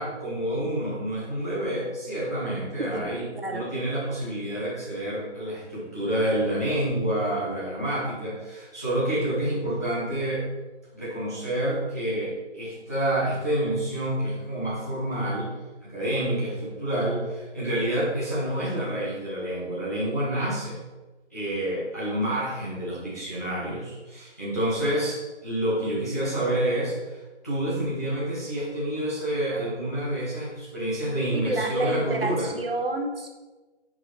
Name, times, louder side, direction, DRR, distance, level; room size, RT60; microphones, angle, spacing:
voice 1, 0.0-3.2 3.5-10.5 10.9-15.5 15.8-20.8 21.3-27.2 27.4-32.5, right 1 dB, 15° left, -9 dB, 0.9 m, -28 dB
voice 2, 3.3-3.7 31.3-33.3, right 2 dB, 55° right, 2 dB, 1.1 m, -29 dB
4.8 x 4.7 x 5.8 m, 1.2 s
figure-of-eight pair, 175°, 35 cm